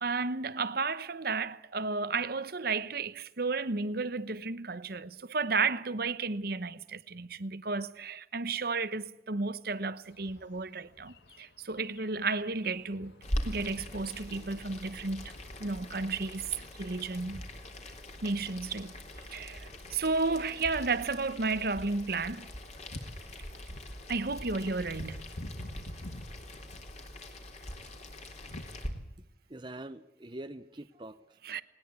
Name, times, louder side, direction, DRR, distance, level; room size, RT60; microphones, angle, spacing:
voice 1, 0.0-13.1 13.4-15.3 15.6-16.5 16.8-17.4 18.2-18.9 19.3-22.5 24.1-25.2 31.5-31.6, right 4 dB, 55° right, 1.0 m, -33 dB
sound 1, 10.0-28.6, left 1 dB, 65° left, 1.9 m, -51 dB
Boiling, 13.2-28.9, left 1 dB, 35° left, 3.6 m, -42 dB
voice 2, 29.2-31.4, right 1 dB, 25° right, 0.8 m, -45 dB
20.0 x 19.5 x 8.4 m
head